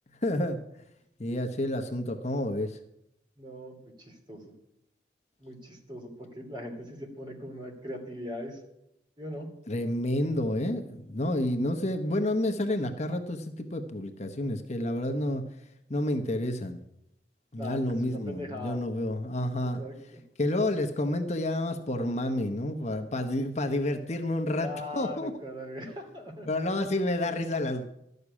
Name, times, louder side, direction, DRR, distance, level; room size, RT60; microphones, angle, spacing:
voice 1, 0.2-0.6 1.2-2.8 9.7-15.4 15.9-16.8 17.5-19.8 20.4-25.3 26.5-27.8, left 1 dB, 40° left, 5 dB, 0.9 m, -29 dB
voice 2, 3.4-4.5 5.4-8.6 9.2-9.5 17.6-18.8 19.8-20.2 24.6-26.5, left 1 dB, 25° right, 2 dB, 2.8 m, -40 dB
12.5 x 6.7 x 9.8 m, 0.81 s
head